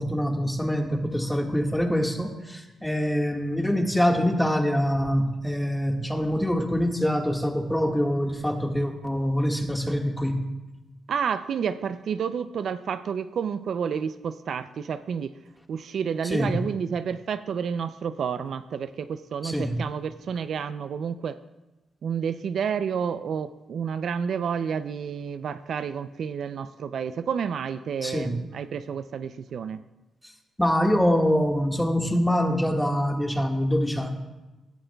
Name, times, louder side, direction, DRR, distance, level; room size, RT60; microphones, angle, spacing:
voice 1, 0.0-10.5 16.2-16.6 19.4-19.8 28.0-28.3 30.6-34.1, equal, 5° left, 2 dB, 1.7 m, -25 dB
voice 2, 11.1-15.3 15.7-21.4 22.0-29.8, right 7 dB, 70° right, 12 dB, 0.4 m, -30 dB
16.5 x 11.5 x 2.3 m, 1.1 s
cardioid pair, 65°, 0 cm